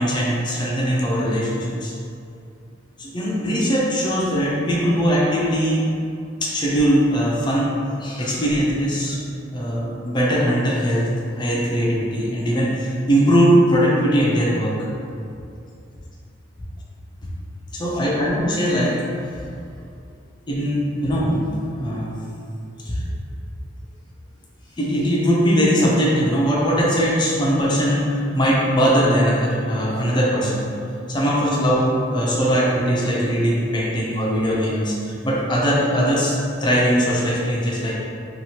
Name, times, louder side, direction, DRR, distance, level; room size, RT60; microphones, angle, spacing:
voice 1, 0.0-1.9 3.0-5.8 6.4-7.7 8.0-9.2 9.5-14.8 17.7-19.0 20.5-21.5 21.8-22.2 22.9-23.1 24.8-30.6 31.1-37.9, equal, 25° left, -5 dB, 0.5 m, -20 dB
2.9 x 2.4 x 2.8 m, 2.4 s
head